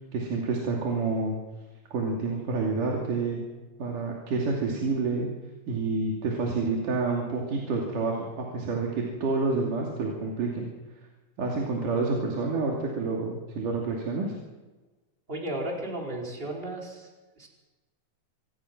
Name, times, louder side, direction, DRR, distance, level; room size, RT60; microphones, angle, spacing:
voice 1, 0.1-1.4 1.9-3.4 3.8-5.3 5.7-10.7 11.4-14.3, right 3 dB, 80° right, -1 dB, 4.3 m, -28 dB
voice 2, 15.3-17.1 17.4-17.5, right 1 dB, 15° right, -1 dB, 4.8 m, -34 dB
26.5 x 18.5 x 6.1 m, 1.2 s
omnidirectional pair, 3.7 m